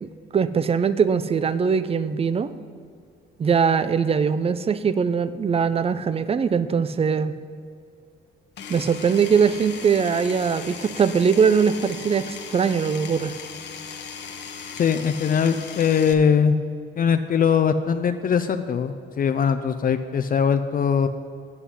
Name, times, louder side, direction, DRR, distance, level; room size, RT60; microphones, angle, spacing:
voice 1, 0.0-2.5 3.4-7.4 8.7-13.3, right 6 dB, 30° right, 14 dB, 0.5 m, -21 dB
Power tool, 8.6-16.1, left 6 dB, 60° left, 1.1 m, -38 dB
voice 2, 14.7-16.6 17.0-21.1, left 7 dB, 45° left, 9 dB, 0.5 m, -21 dB
8.2 x 8.1 x 5.6 m, 2.3 s
cardioid pair, 90°, 20 cm